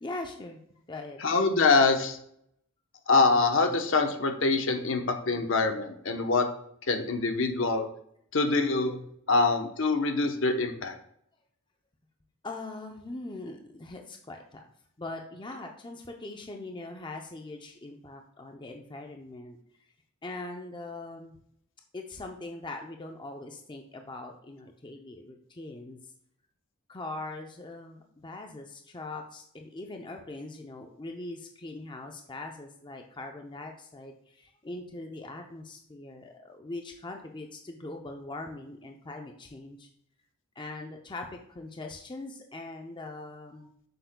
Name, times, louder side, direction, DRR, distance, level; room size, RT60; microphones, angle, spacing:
voice 1, 0.0-0.6 0.9-1.2 12.4-14.6 15.0-19.6 20.2-21.4 21.9-26.0 26.9-39.9 40.6-43.7, left 2 dB, 20° left, 3 dB, 0.5 m, -41 dB
voice 2, 1.2-2.2 3.1-6.5 6.9-7.9 8.3-9.0 9.3-10.9, left 3 dB, 60° left, 5 dB, 0.9 m, -24 dB
7.6 x 6.8 x 2.2 m, 0.69 s
head